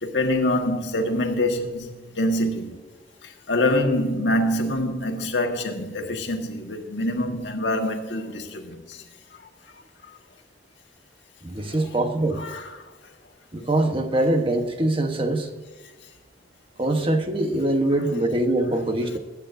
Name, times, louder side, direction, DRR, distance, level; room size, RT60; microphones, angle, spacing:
voice 1, 0.0-1.9 2.2-2.7 3.2-9.0 12.4-12.8, left 1 dB, 75° left, 1.6 m, -25 dB
voice 2, 11.4-12.4 13.5-15.5 16.8-19.2, right 1 dB, 30° right, 1.1 m, -23 dB
20.0 x 9.1 x 2.6 m
head